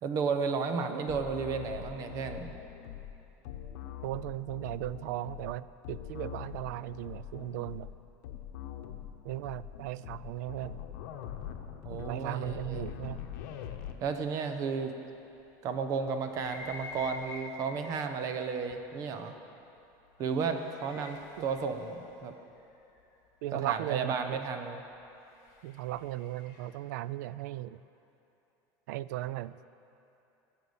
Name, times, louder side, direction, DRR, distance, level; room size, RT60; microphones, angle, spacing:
voice 1, 0.0-2.6 11.8-12.8 14.0-14.9 15.6-19.3 20.2-22.3 23.5-24.8, right 5 dB, 40° right, 7 dB, 0.9 m, -33 dB
sound 1, 1.1-13.9, left 10 dB, 80° left, 1.0 m, -43 dB
voice 2, 4.0-7.9 9.2-10.8 11.9-13.2 21.4-21.5 23.4-24.4 25.6-27.8 28.9-29.6, right 15 dB, 90° right, 17 dB, 0.4 m, -37 dB
sound 2, 16.2-17.9 18.7-18.8 20.1-23.0 25.1-26.8, left 3 dB, 45° left, 2.7 m, -48 dB
15.5 x 7.0 x 7.9 m, 2.9 s
cardioid pair, 160°, 9 cm